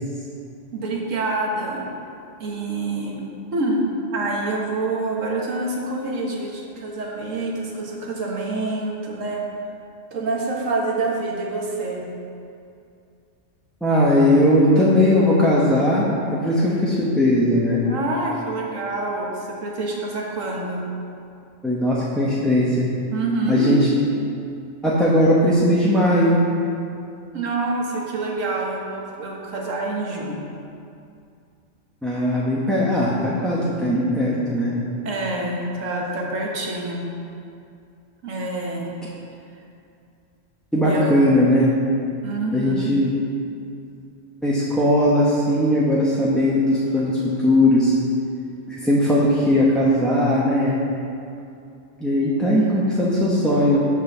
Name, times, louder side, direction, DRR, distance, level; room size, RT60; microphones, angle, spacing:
voice 1, 0.7-1.9 2.4-3.2 3.5-3.8 4.1-9.4 10.1-12.0 17.8-20.8 23.1-23.7 27.3-30.5 35.0-37.1 38.2-38.9 40.8-41.2 42.2-43.0, right 2 dB, 90° right, -1 dB, 1.6 m, -26 dB
voice 2, 13.8-17.8 21.6-22.9 23.5-23.8 24.8-26.4 32.0-34.7 40.7-41.7 42.5-43.1 44.4-47.9 48.7-50.8 52.0-53.8, left 1 dB, ahead, -8 dB, 0.9 m, -19 dB
8.2 x 4.7 x 6.7 m, 2.5 s
omnidirectional pair, 1.3 m